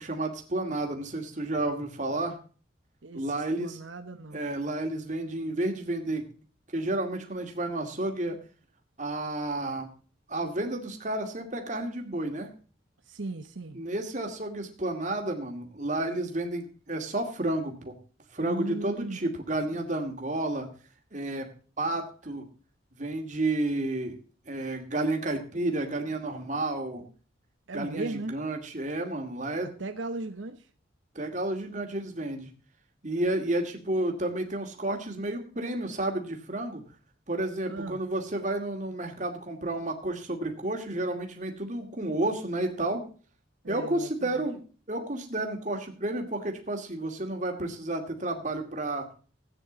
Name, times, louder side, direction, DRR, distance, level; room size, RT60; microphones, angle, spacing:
voice 1, 0.0-2.4 3.1-3.8 4.3-6.3 6.7-8.4 9.0-9.9 10.3-12.5 13.7-17.9 18.3-20.7 21.1-21.5 21.8-22.4 23.0-24.2 24.5-27.0 27.7-29.7 31.1-32.5 33.0-36.8 37.3-43.0 43.7-44.6 44.9-49.1, right 2 dB, 40° right, 3 dB, 2.3 m, -31 dB
voice 2, 3.0-3.3 3.6-4.6 13.1-13.8 18.4-19.2 27.7-28.3 29.6-30.7 33.5-33.7 37.7-38.0 43.6-44.4, right 2 dB, 80° right, 7 dB, 1.0 m, -37 dB
15.0 x 9.2 x 4.0 m, 0.39 s
head